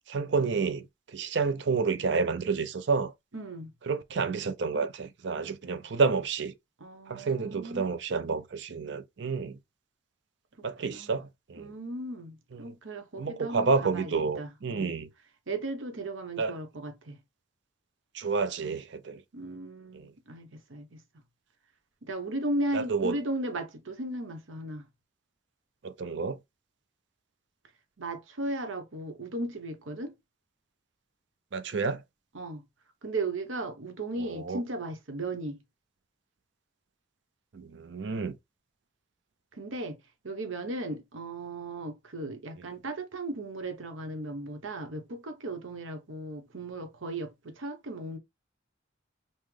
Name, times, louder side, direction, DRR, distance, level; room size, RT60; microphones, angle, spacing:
voice 1, 0.1-0.8 1.1-3.1 3.9-6.5 7.1-9.6 10.6-11.7 12.5-12.7 13.2-15.1 16.4-16.5 18.1-19.2 19.9-20.1 22.7-23.2 25.8-26.4 31.5-32.0 34.2-34.6 37.5-38.4, right 4 dB, 60° right, 0.5 m, -29 dB
voice 2, 3.3-3.7 6.8-7.9 10.8-11.2 11.6-15.0 15.5-17.2 19.3-21.0 22.0-24.9 28.0-30.1 32.3-32.6 33.0-35.6 39.5-40.0 40.2-48.2, right 2 dB, 90° right, 1.0 m, -36 dB
5.6 x 2.1 x 3.2 m
head